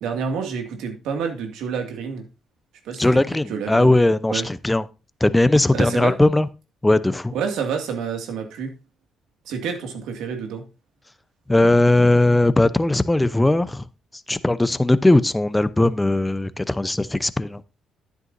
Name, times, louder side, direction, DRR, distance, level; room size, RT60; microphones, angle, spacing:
voice 1, 0.0-2.2 2.8-3.1 3.5-3.9 4.3-4.5 5.7-6.1 7.3-8.7 9.4-10.7, right 6 dB, 90° right, 2.1 m, -28 dB
voice 2, 3.0-4.8 5.2-6.5 6.8-7.3 11.5-13.8 14.3-17.6, left 2 dB, 10° left, 0.7 m, -18 dB
10.5 x 9.5 x 2.7 m
cardioid pair, 90°, 0 cm